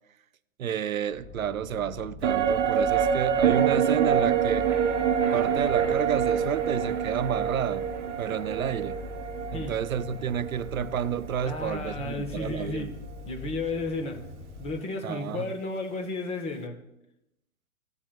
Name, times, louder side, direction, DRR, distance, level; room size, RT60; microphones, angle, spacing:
voice 1, 0.6-4.7 5.3-7.9 8.2-9.0 9.5-12.9 15.0-15.5, right 9 dB, 75° right, 0.5 m, -30 dB
sound 1, 1.1-14.8, left 4 dB, 65° left, 1.7 m, -42 dB
sound 2, 2.2-11.7 12.0-12.1, right 8 dB, 55° right, 0.9 m, -26 dB
voice 2, 11.4-12.9 13.3-14.2 14.6-16.8, left 3 dB, 15° left, 0.9 m, -33 dB
14.5 x 7.1 x 2.3 m
figure-of-eight pair, 115°, 42 cm